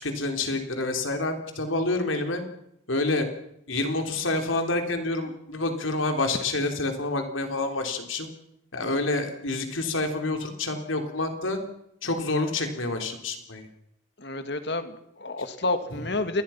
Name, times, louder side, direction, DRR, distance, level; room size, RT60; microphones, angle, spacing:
voice 1, 0.0-2.4 2.9-3.3 3.7-8.3 8.7-11.6 12.0-13.7, left 2 dB, 85° left, 5 dB, 3.6 m, -28 dB
voice 2, 14.2-16.4, left 2 dB, 60° left, 9 dB, 2.1 m, -29 dB
28.0 x 21.0 x 5.9 m, 0.80 s
head